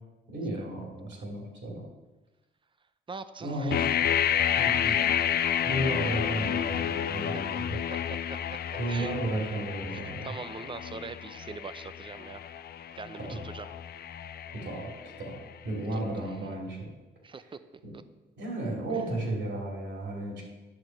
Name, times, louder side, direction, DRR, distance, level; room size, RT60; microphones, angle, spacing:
voice 1, 0.3-1.8 3.4-4.0 4.6-5.0 5.6-7.8 8.8-10.3 13.2-13.4 14.5-14.9 15.2-16.9 17.8-17.9 18.4-20.4, right 1 dB, 65° right, -1 dB, 2.6 m, -33 dB
voice 2, 3.1-3.8 7.2-7.4 7.9-8.0 8.9-9.2 9.9-12.4 12.9-13.7 15.9-16.0 17.2-17.6 17.9-18.0 18.9-19.0, right 4 dB, 25° right, 12 dB, 0.5 m, -42 dB
sound 1, 3.7-15.5, left 9 dB, 50° left, 0.5 m, -30 dB
8.8 x 6.3 x 4.5 m, 1.1 s
cardioid pair, 90°, 20 cm